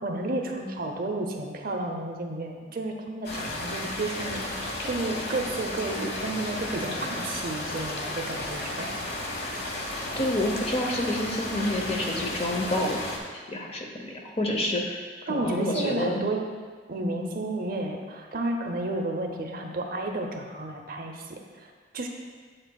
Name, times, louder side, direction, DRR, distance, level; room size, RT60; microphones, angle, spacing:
voice 1, 0.0-4.4 4.8-9.0 15.3-16.5 16.9-22.1, right 2 dB, 50° right, 2 dB, 0.7 m, -31 dB
sound 1, 3.2-13.2, left 1 dB, 60° left, 1.1 m, -33 dB
voice 2, 10.2-13.1 13.5-15.0 15.3-16.2, left 1 dB, 30° left, 1 dB, 0.8 m, -28 dB
7.9 x 7.7 x 2.3 m, 1.5 s
head